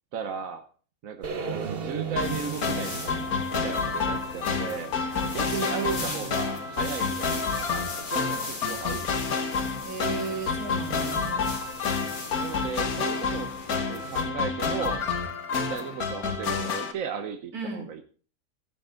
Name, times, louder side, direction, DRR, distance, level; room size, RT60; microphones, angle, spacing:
voice 1, 0.1-0.6 1.0-3.2 3.5-9.4 12.4-13.5 13.9-15.1 15.5-18.0, right 7 dB, 65° right, 7 dB, 1.3 m, -36 dB
sound 1, 1.2-14.2, left 2 dB, 65° left, 4.0 m, -41 dB
sound 2, 1.2-5.3, right 6 dB, 45° right, 1.2 m, -36 dB
sound 3, 2.2-16.9, left 5 dB, 80° left, 1.8 m, -29 dB
voice 2, 5.2-6.3 9.8-11.5 17.5-17.9, right 4 dB, 85° right, 0 dB, 3.8 m, -36 dB
15.0 x 9.4 x 3.7 m, 0.40 s
omnidirectional pair, 1.5 m